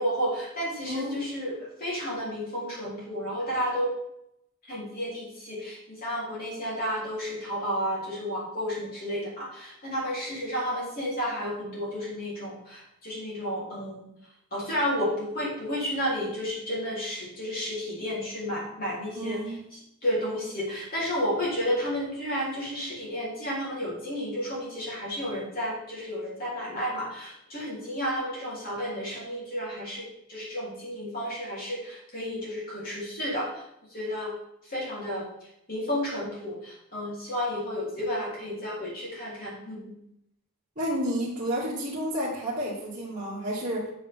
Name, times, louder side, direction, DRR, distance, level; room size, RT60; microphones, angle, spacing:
voice 1, 0.0-3.9 4.7-14.1 14.5-19.4 19.7-33.6 33.9-34.3 34.7-35.3 35.7-39.9, equal, 40° left, -6 dB, 3.7 m, -32 dB
voice 2, 0.9-1.2 19.1-19.6 40.8-43.9, equal, 35° right, -10 dB, 2.3 m, -30 dB
8.3 x 7.7 x 3.7 m, 0.78 s
head